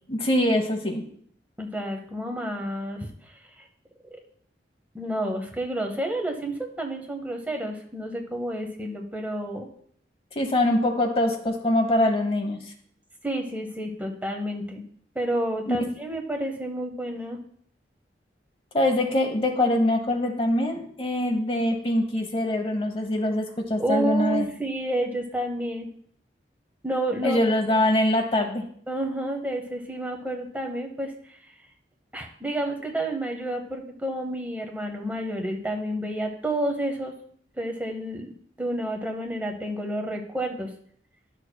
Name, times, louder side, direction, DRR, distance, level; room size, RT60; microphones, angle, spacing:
voice 1, 0.1-1.0 10.3-12.6 15.7-15.8 18.7-24.5 27.2-28.6, left 1 dB, 30° left, 5 dB, 0.9 m, -23 dB
voice 2, 1.6-3.7 4.1-4.2 4.9-9.7 13.2-14.8 15.1-17.4 23.8-25.9 26.8-27.4 28.9-31.1 32.1-37.1 37.6-40.7, right 1 dB, 10° right, 2 dB, 0.8 m, -30 dB
11.5 x 6.4 x 2.2 m, 0.62 s
head